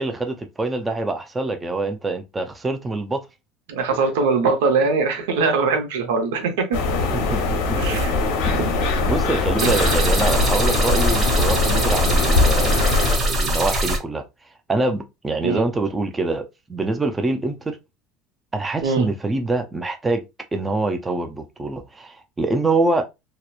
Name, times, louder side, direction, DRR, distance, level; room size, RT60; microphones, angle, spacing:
voice 1, 0.0-3.2 7.1-7.4 7.7-8.0 8.4-14.2 14.7-17.8 18.5-20.2 20.5-23.0, right 2 dB, 15° right, 0.4 m, -25 dB
voice 2, 3.7-6.8 7.8-8.2 8.6-8.7 9.6-9.8 15.4-15.6 18.8-19.1, right 4 dB, 90° right, 0.7 m, -22 dB
sound 1, 6.7-13.2, left 3 dB, 75° left, 0.8 m, -22 dB
sound 2, 9.6-14.0, right 1 dB, 30° right, 1.2 m, -21 dB
2.9 x 2.1 x 2.3 m
supercardioid pair, 135°, 0 cm